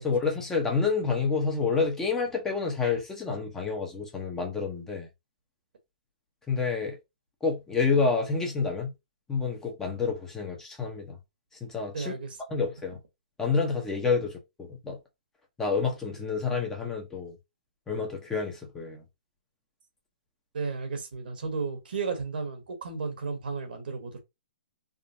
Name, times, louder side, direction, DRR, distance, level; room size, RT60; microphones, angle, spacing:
voice 1, 0.0-5.1 6.5-7.0 7.4-8.9 9.3-11.2 11.6-12.1 12.5-13.0 13.4-15.0 15.6-17.4 17.9-19.0, left 4 dB, 10° left, 0.8 m, -28 dB
voice 2, 11.9-12.4 20.5-24.2, right 4 dB, 75° right, 1.4 m, -33 dB
3.6 x 2.2 x 2.7 m
hypercardioid pair, 150°, 5 cm